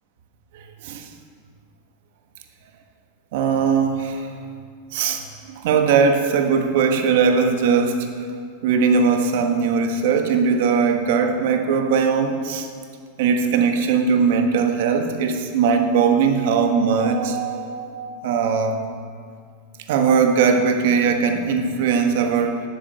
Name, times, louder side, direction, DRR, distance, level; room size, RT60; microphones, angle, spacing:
voice 1, 0.5-1.1 3.3-4.3 4.9-5.2 5.6-8.1 8.6-12.7 13.2-18.8 19.9-22.6, right 5 dB, 65° right, 5 dB, 1.3 m, -20 dB
10.5 x 7.3 x 6.8 m, 2.1 s
supercardioid pair, 140°, 0 cm